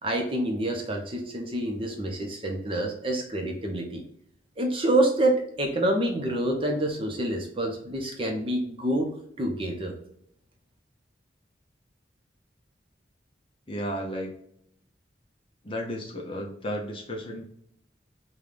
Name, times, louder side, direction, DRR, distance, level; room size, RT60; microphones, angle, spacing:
voice 1, 0.0-4.0 4.6-9.9, right 1 dB, 30° right, 2 dB, 0.7 m, -27 dB
voice 2, 13.7-14.4 15.6-17.4, equal, 30° left, 1 dB, 0.6 m, -33 dB
5.4 x 2.3 x 3.3 m, 0.71 s
head